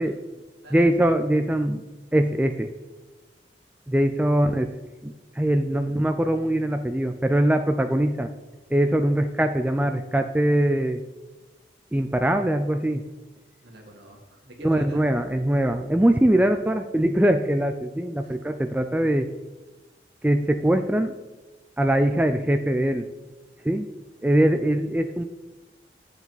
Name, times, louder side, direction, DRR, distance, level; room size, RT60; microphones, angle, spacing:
voice 1, 0.0-1.1 13.6-15.0 18.2-18.4, equal, 75° right, 1 dB, 2.2 m, -46 dB
voice 2, 0.7-1.8 2.1-2.7 3.9-4.7 5.0-8.3 8.7-11.0 11.9-13.0 14.6-19.3 20.2-21.1 21.8-23.1 23.6-23.9 24.2-25.2, right 1 dB, 10° right, 7 dB, 0.3 m, -22 dB
10.5 x 7.1 x 4.0 m, 1.2 s
head